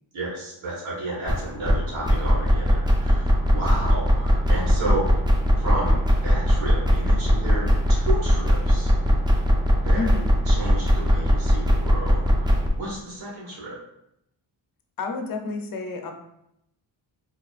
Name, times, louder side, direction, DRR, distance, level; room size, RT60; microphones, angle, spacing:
voice 1, 0.1-5.1 5.6-8.9 9.8-10.1 10.5-13.8, right 1 dB, 90° right, -6 dB, 1.5 m, -32 dB
sound 1, 1.3-12.7, equal, 10° right, 0.5 m, -20 dB
voice 2, 9.9-10.4 15.0-16.1, left 4 dB, 45° left, 3 dB, 0.7 m, -30 dB
4.9 x 2.9 x 2.4 m, 0.79 s
cardioid pair, 105°, 46 cm